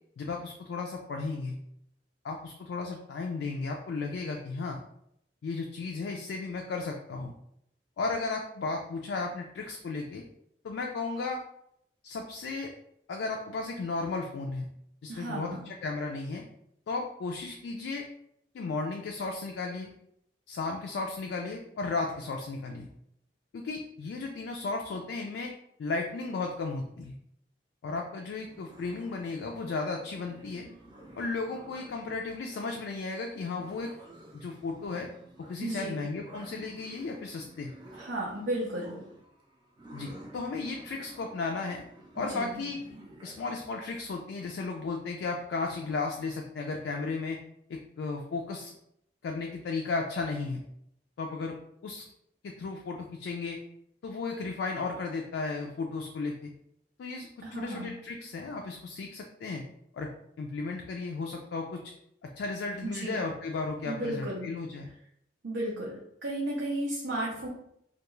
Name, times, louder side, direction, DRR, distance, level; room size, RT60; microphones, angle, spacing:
voice 1, 0.2-1.6 2.2-4.8 5.4-7.3 8.0-10.2 10.6-11.4 12.0-12.7 13.1-14.7 15.0-16.4 16.9-18.1 18.5-19.9 20.5-22.9 23.5-25.5 25.8-27.2 27.8-30.7 31.2-34.0 34.3-35.1 35.5-37.7 39.9-41.8 42.1-42.8 43.2-47.4 47.7-48.7 49.2-50.6 51.2-51.6 51.8-52.0 52.4-53.6 54.0-56.5 57.0-59.6 59.9-60.1 60.4-61.8 62.2-64.9, left 3 dB, 80° left, 1 dB, 0.3 m, -34 dB
voice 2, 15.1-15.7 35.6-36.0 37.9-39.1 42.2-42.6 57.4-57.9 62.8-63.2 63.9-64.5 65.4-67.5, right 1 dB, 85° right, -4 dB, 0.5 m, -34 dB
sound 1, 28.3-43.5, right 1 dB, 25° right, 0.5 m, -52 dB
2.3 x 2.3 x 3.0 m, 0.74 s
head